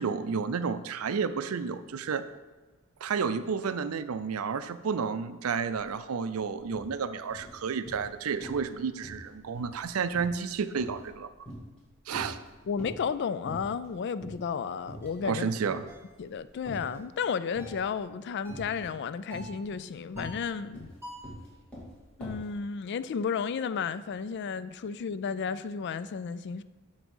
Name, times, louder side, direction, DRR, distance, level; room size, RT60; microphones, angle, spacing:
voice 1, 0.0-2.2 3.0-11.3 12.1-12.4 15.3-15.8, right 6 dB, 75° right, 12 dB, 0.5 m, -31 dB
sound 1, 5.8-5.9 6.2-6.9 7.3-8.1 8.4-8.7 9.0-11.8 12.1-13.1 13.5-13.9 14.2-14.4 14.8-15.4 15.7-17.0 17.6-18.0 18.5-19.0 19.3-22.5, equal, 5° left, 2.4 m, -44 dB
voice 2, 12.7-15.5 16.2-20.9 22.2-26.6, left 6 dB, 50° left, 15 dB, 0.3 m, -33 dB
sound 2, 15.0-15.2 15.9-16.1 16.7-17.0 17.6-17.8 18.4-18.7 19.3-19.6 20.2-20.5 21.0-21.4, equal, 10° right, 1.8 m, -47 dB
6.4 x 6.0 x 5.4 m, 1.2 s
head